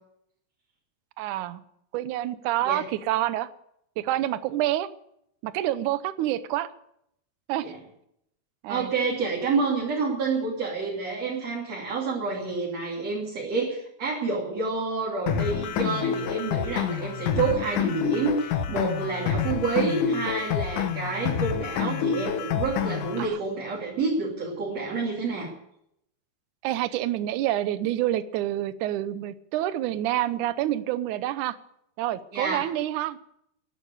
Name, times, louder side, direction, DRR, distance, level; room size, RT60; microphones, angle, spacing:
voice 1, 1.2-1.6 1.9-3.5 4.0-4.9 5.4-6.7 7.5-7.7 8.6-8.9 19.8-19.9 23.2-23.4 26.6-31.6 32.0-33.2, right 13 dB, 75° right, 14 dB, 2.0 m, -27 dB
voice 2, 8.7-25.5 32.3-32.6, right 4 dB, 45° right, -4 dB, 3.9 m, -28 dB
sound 1, 15.3-23.3, left 8 dB, 70° left, 2.3 m, -28 dB
13.5 x 11.0 x 8.4 m, 0.74 s
omnidirectional pair, 4.1 m